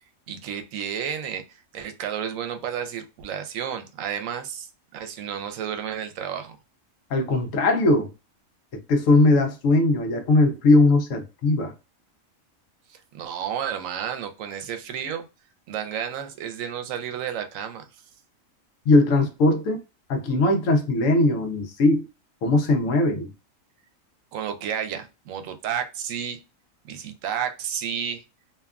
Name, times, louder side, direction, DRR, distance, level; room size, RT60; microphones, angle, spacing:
voice 1, 0.3-6.6 12.9-15.3 15.7-17.8 24.3-26.4 26.9-28.2, right 8 dB, 80° right, 0.9 m, -31 dB
voice 2, 7.1-8.1 8.9-11.7 18.9-19.8 20.1-22.0 22.4-23.3, left 2 dB, 75° left, 1.0 m, -20 dB
2.8 x 2.2 x 2.3 m
omnidirectional pair, 1.4 m